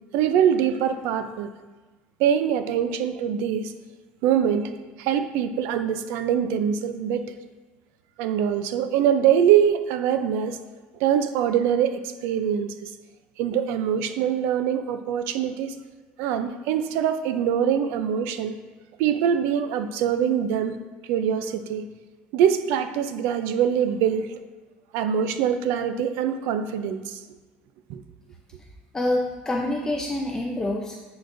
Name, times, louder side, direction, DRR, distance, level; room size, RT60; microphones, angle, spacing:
voice 1, 0.1-1.5 2.2-3.7 4.2-4.7 5.0-7.3 8.2-10.6 11.0-12.9 13.4-15.7 16.2-18.5 19.0-20.8 21.1-21.9 22.3-24.4 24.9-27.2 27.9-28.0, right 9 dB, 80° right, 10 dB, 0.4 m, -23 dB
voice 2, 28.9-31.0, left 1 dB, 15° left, 0 dB, 0.5 m, -26 dB
10.0 x 3.9 x 2.6 m, 1.3 s
cardioid pair, 145°, 4 cm